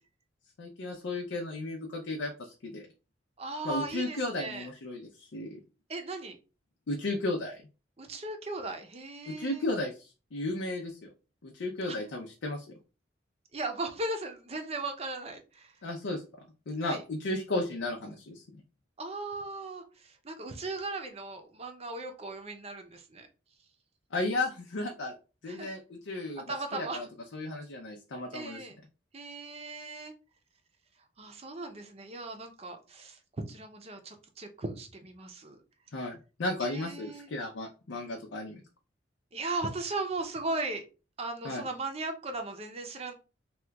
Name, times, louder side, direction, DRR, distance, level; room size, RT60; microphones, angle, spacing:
voice 1, 0.6-2.9 3.6-5.6 6.9-7.6 9.3-11.1 11.4-12.7 15.8-16.2 16.7-18.6 24.1-25.1 25.4-27.1 27.3-28.6 35.9-38.6 41.4-41.6, left 2 dB, 85° left, 1 dB, 0.6 m, -34 dB
voice 2, 3.4-4.7 5.9-6.4 8.0-9.6 11.9-12.0 13.5-15.7 16.8-17.0 19.0-23.3 25.5-25.7 26.5-27.1 28.3-28.8 29.1-30.1 31.2-33.2 33.5-35.6 36.6-37.3 39.3-40.8 41.2-43.1, right 2 dB, 35° right, 5 dB, 0.6 m, -37 dB
2.9 x 2.3 x 3.3 m, 0.33 s
head